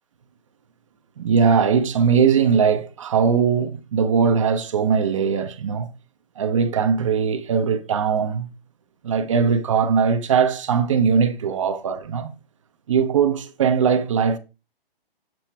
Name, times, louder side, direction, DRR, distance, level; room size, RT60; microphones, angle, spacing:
voice 1, 1.2-5.9 6.4-8.5 9.0-12.3 12.9-14.4, right 6 dB, 35° right, 0.6 m, -20 dB
7.6 x 4.0 x 4.4 m
hypercardioid pair, 155°, 30 cm